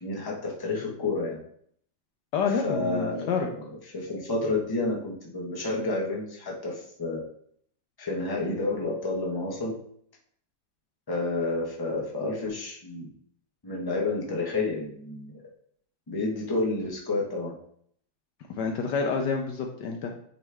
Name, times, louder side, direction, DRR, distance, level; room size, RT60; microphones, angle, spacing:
voice 1, 0.0-1.4 2.5-3.4 3.9-7.2 8.0-9.8 11.1-13.1 13.6-15.3 16.1-17.5, left 2 dB, 15° left, -3 dB, 1.0 m, -30 dB
voice 2, 2.3-3.5 18.5-20.2, left 5 dB, 70° left, 3 dB, 1.2 m, -28 dB
8.8 x 3.1 x 3.4 m, 0.65 s
omnidirectional pair, 2.1 m